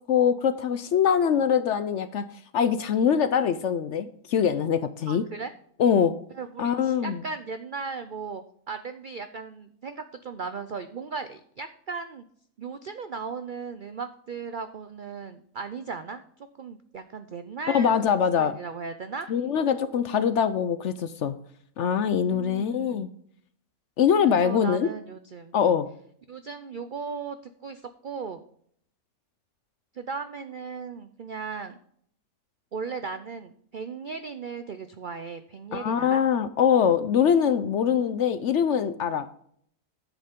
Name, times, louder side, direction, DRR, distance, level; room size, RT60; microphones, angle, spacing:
voice 1, 0.1-2.3 2.5-5.2 5.8-6.1 6.6-7.2 17.7-18.6 19.3-21.4 21.8-23.1 24.0-24.9 25.5-25.9 35.7-39.3, left 8 dB, 65° left, 12 dB, 0.8 m, -23 dB
voice 2, 5.1-5.5 6.3-12.2 12.6-18.0 18.4-19.3 22.3-23.0 24.2-25.6 26.3-28.4 29.9-31.8 32.7-36.2, right 5 dB, 70° right, 10 dB, 0.4 m, -37 dB
10.0 x 7.9 x 3.6 m, 0.64 s
omnidirectional pair, 1.6 m